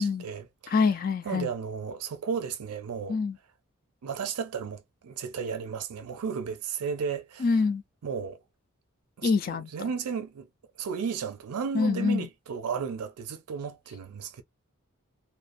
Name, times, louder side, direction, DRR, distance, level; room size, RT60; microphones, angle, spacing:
voice 1, 0.0-0.8 1.2-3.2 4.0-7.5 8.0-8.4 9.2-10.5 10.8-14.4, right 6 dB, 90° right, 0.4 m, -34 dB
voice 2, 0.7-1.5 3.1-3.4 7.4-7.8 9.2-9.7 11.7-12.3, left 4 dB, 40° left, 0.3 m, -25 dB
2.4 x 2.1 x 2.4 m
head